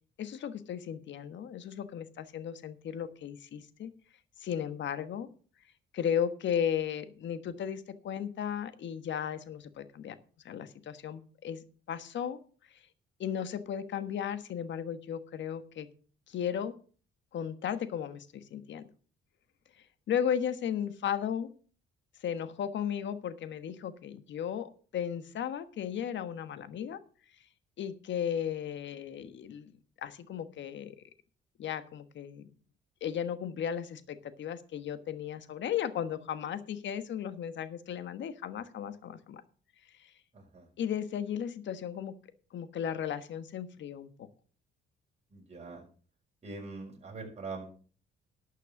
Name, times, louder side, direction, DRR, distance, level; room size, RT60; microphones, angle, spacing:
voice 1, 0.2-3.9 4.4-5.3 5.9-10.1 10.4-12.4 13.2-15.9 16.3-16.7 17.3-18.9 20.1-21.5 22.2-27.0 27.8-29.7 30.0-30.9 31.6-32.5 33.0-39.4 40.0-40.1 40.8-42.1 42.5-44.3, left 9 dB, 65° left, 12 dB, 1.3 m, -35 dB
voice 2, 40.3-40.7 45.3-45.8 46.4-47.7, right 3 dB, 35° right, 0 dB, 5.2 m, -43 dB
12.0 x 6.5 x 7.1 m, 0.41 s
cardioid pair, 90°, 20 cm